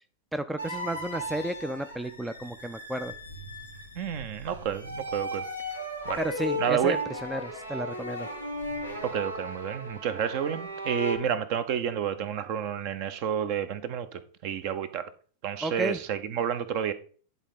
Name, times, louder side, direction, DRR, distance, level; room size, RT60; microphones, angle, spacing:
voice 1, 0.3-3.1 6.2-8.3 15.6-16.0, right 1 dB, 5° right, 0.4 m, -32 dB
sound 1, 0.6-11.2, equal, 85° right, 1.4 m, -36 dB
voice 2, 4.0-5.4 6.1-6.2 6.6-7.0 9.0-15.1 15.4-16.9, right 8 dB, 45° right, 0.8 m, -30 dB
10.0 x 4.0 x 5.4 m
figure-of-eight pair, 90°, 0 cm